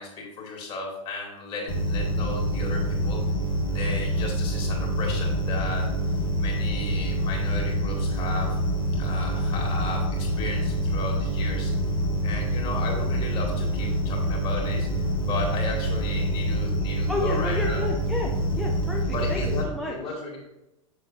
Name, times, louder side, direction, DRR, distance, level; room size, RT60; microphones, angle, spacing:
voice 1, 0.0-3.2 3.7-5.9 6.4-8.6 9.0-11.7 12.2-17.8 19.1-20.4, left 3 dB, 30° left, 0 dB, 2.0 m, -35 dB
sound 1, 1.7-19.6, equal, 75° left, 1.7 m, -26 dB
voice 2, 17.1-20.2, left 2 dB, ahead, -2 dB, 0.6 m, -31 dB
6.4 x 6.4 x 2.5 m, 0.92 s
figure-of-eight pair, 90°, 18 cm